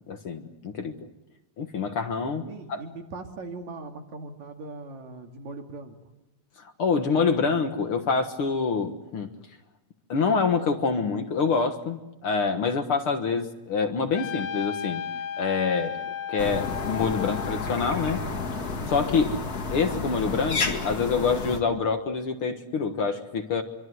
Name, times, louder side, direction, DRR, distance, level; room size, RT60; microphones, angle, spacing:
voice 1, 0.1-1.0 1.6-2.8 6.6-9.3 10.1-15.0 15.4-16.0 16.3-18.3 18.9-19.4 19.7-23.6, left 5 dB, 50° left, 7 dB, 2.1 m, -26 dB
voice 2, 2.5-6.0, right 3 dB, 70° right, 4 dB, 3.8 m, -40 dB
Trumpet, 14.1-18.9, left 8 dB, 70° left, 2.2 m, -35 dB
sound 1, 16.4-21.6, left 4 dB, 35° left, 2.1 m, -31 dB
26.5 x 24.0 x 8.0 m, 0.97 s
omnidirectional pair, 3.4 m